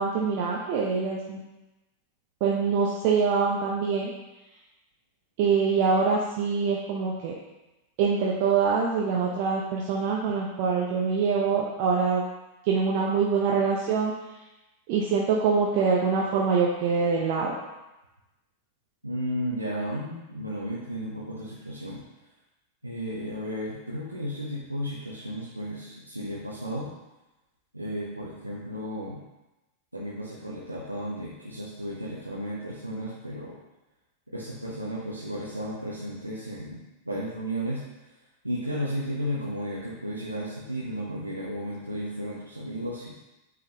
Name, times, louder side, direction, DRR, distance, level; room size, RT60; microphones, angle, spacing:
voice 1, 0.0-1.4 2.4-4.1 5.4-7.3 8.0-12.2 12.6-14.1 14.9-17.5, right 5 dB, 45° right, -2 dB, 0.7 m, -24 dB
voice 2, 19.0-22.0 22.8-26.9 27.7-29.2 29.9-33.6 34.3-37.8 38.4-43.1, equal, 85° right, -7 dB, 0.9 m, -34 dB
8.7 x 3.8 x 2.9 m, 1.0 s
figure-of-eight pair, 90°, 0 cm